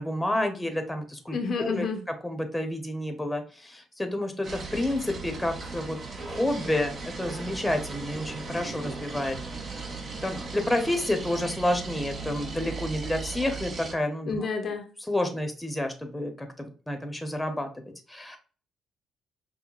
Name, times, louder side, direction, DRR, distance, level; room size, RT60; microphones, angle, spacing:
voice 1, 0.0-1.9 2.2-6.0 6.2-9.4 10.2-14.4 15.1-17.8 18.1-18.4, left 1 dB, 10° left, 5 dB, 0.9 m, -29 dB
voice 2, 1.3-2.0 14.3-14.9, left 4 dB, 55° left, 4 dB, 0.6 m, -29 dB
sound 1, 4.4-13.9, right 4 dB, 45° right, 0.9 m, -37 dB
5.6 x 2.2 x 2.4 m, 0.38 s
cardioid pair, 90°, 0 cm